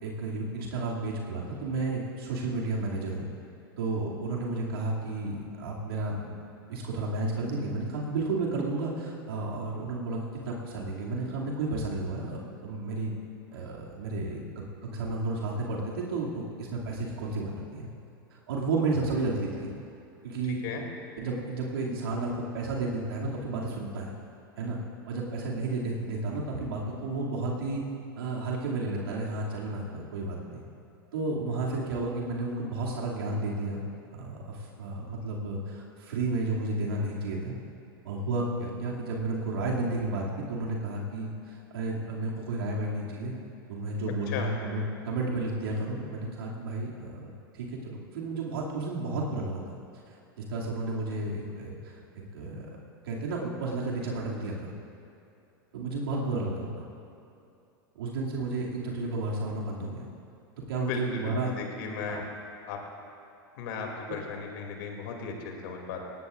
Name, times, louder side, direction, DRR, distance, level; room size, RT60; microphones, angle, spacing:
voice 1, 0.0-3.2 3.8-6.4 6.7-13.1 13.5-14.4 14.8-17.9 18.3-19.7 20.2-20.6 21.2-24.1 24.6-24.8 25.1-27.8 28.2-30.6 31.1-33.8 34.1-37.5 38.0-43.3 43.7-49.8 50.1-52.0 52.3-52.7 53.0-54.7 55.7-56.8 57.9-60.1 60.7-61.5 62.1-62.2, right 2 dB, 80° right, -4 dB, 2.6 m, -32 dB
voice 2, 20.5-20.8 44.3-44.5 60.8-62.2 62.7-62.8 63.6-66.0, left 5 dB, 65° left, 1 dB, 2.8 m, -36 dB
19.0 x 17.5 x 2.6 m, 2.7 s
hypercardioid pair, 95°, 12 cm